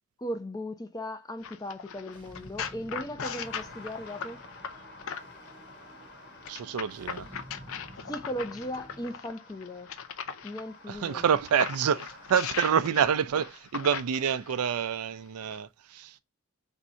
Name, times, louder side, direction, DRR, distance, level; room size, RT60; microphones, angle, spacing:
voice 1, 0.2-4.4 8.1-9.9 10.4-11.4, equal, 15° left, 0.5 m, -37 dB
sound 1, 1.4-5.5 6.4-10.6 11.2-14.6 15.4-15.6, left 7 dB, 65° left, 0.5 m, -39 dB
sound 2, 2.1-9.2, right 1 dB, 20° right, 0.8 m, -51 dB
sound 3, 3.4-12.8, left 2 dB, 50° left, 1.2 m, -51 dB
voice 2, 6.5-7.3 10.9-16.2, right 7 dB, 90° right, 0.4 m, -27 dB
3.5 x 2.7 x 4.2 m
head